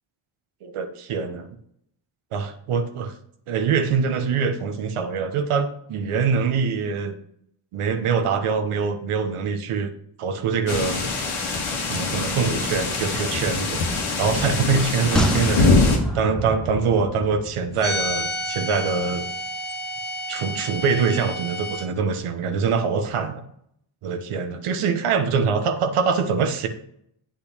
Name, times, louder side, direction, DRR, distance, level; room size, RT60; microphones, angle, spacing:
voice 1, 0.6-1.5 2.3-3.1 3.5-7.1 7.7-9.9 10.2-11.0 11.9-13.8 14.2-15.8 16.1-19.3 20.3-23.4 24.0-26.7, right 5 dB, 85° right, 7 dB, 1.2 m, -24 dB
sound 1, 10.7-16.0, left 3 dB, 90° left, 1.9 m, -23 dB
sound 2, 15.2-18.6 18.9-19.0, equal, ahead, 1.3 m, -28 dB
sound 3, 17.8-21.9, equal, 20° left, 1.6 m, -30 dB
8.4 x 5.8 x 5.0 m, 0.71 s
cardioid pair, 60°, 49 cm